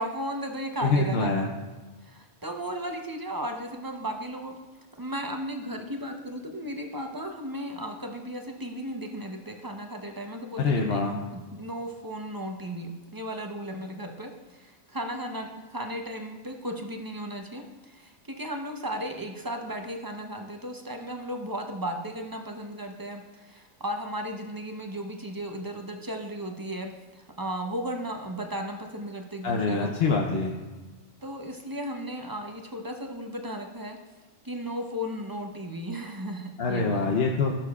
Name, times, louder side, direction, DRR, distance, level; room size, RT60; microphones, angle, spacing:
voice 1, 0.0-1.5 2.0-4.6 5.0-29.9 31.2-34.0 34.4-37.1, equal, 20° right, 3 dB, 0.6 m, -35 dB
voice 2, 0.8-1.5 10.6-11.1 29.4-30.5 36.6-37.5, left 3 dB, 60° left, 1 dB, 0.9 m, -25 dB
15.0 x 6.9 x 2.3 m, 1.3 s
omnidirectional pair, 1.3 m